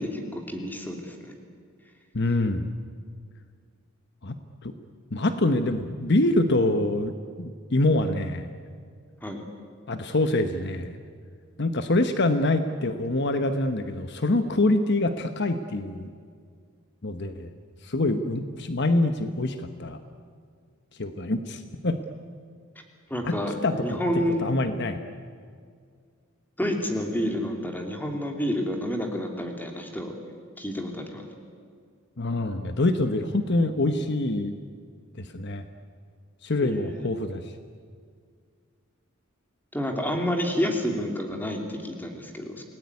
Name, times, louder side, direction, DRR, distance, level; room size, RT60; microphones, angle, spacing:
voice 1, 0.0-1.3 9.2-9.4 23.1-24.4 26.6-30.1 30.6-31.2 36.6-37.1 39.7-42.6, equal, 10° left, 3 dB, 3.0 m, -29 dB
voice 2, 2.1-2.7 4.2-4.4 4.6-4.7 5.1-8.5 9.9-11.0 11.6-16.1 17.0-17.5 17.8-20.0 21.0-22.0 23.2-23.4 23.6-24.0 24.4-25.0 32.2-34.5 35.2-35.7 36.4-37.5, left 2 dB, 55° left, 8 dB, 1.1 m, -25 dB
28.5 x 19.0 x 9.7 m, 2.1 s
head